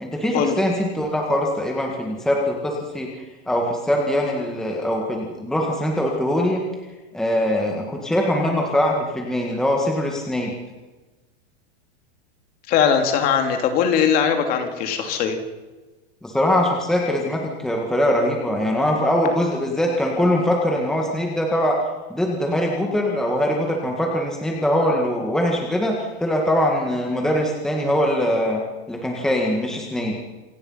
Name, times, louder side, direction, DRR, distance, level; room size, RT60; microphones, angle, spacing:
voice 1, 0.0-3.1 3.5-6.6 7.1-10.5 16.2-21.8 22.1-28.6 28.9-30.2, equal, ahead, 0 dB, 1.9 m, -22 dB
voice 2, 12.7-15.4, left 7 dB, 25° left, 6 dB, 2.7 m, -20 dB
27.5 x 18.0 x 5.7 m, 1.2 s
supercardioid pair, 175°, 33 cm